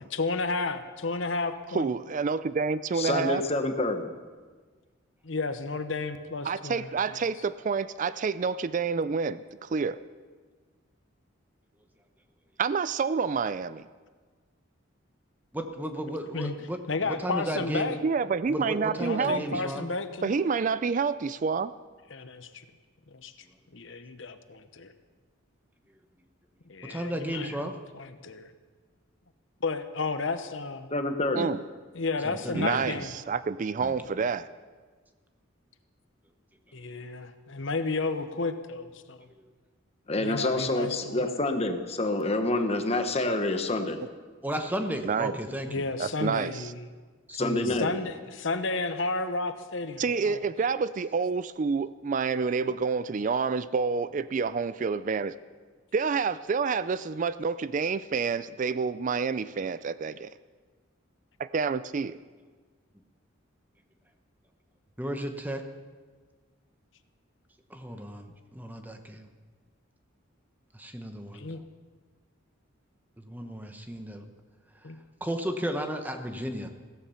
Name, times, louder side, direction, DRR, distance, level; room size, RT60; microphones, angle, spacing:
voice 1, 0.1-1.9 5.2-7.2 16.3-16.5 16.9-18.0 19.0-20.5 22.1-22.5 23.1-23.3 23.7-24.9 26.7-28.5 29.6-30.9 31.9-33.1 36.7-39.2 40.2-41.3 45.7-46.9 47.8-50.4 71.3-71.6 74.8-75.0, left 3 dB, 65° left, 9 dB, 1.0 m, -32 dB
voice 2, 1.7-3.4 6.4-10.0 12.6-13.9 18.0-19.6 20.2-21.7 31.3-31.6 32.5-34.5 45.0-45.4 46.0-46.7 50.0-55.4 55.9-60.3 61.4-62.2, right 5 dB, 40° right, 15 dB, 0.4 m, -28 dB
voice 3, 2.9-4.1 30.9-31.5 40.1-44.0 47.3-47.9, left 2 dB, 30° left, 6 dB, 1.1 m, -27 dB
voice 4, 15.5-18.0 18.5-19.9 26.9-27.7 32.2-33.1 33.8-33.9 39.4-39.5 44.4-45.8 47.3-47.8 65.0-65.7 67.7-69.3 70.7-71.5 73.2-74.2 75.2-76.7, equal, 10° right, 6 dB, 1.0 m, -34 dB
16.0 x 14.0 x 5.7 m, 1.4 s
head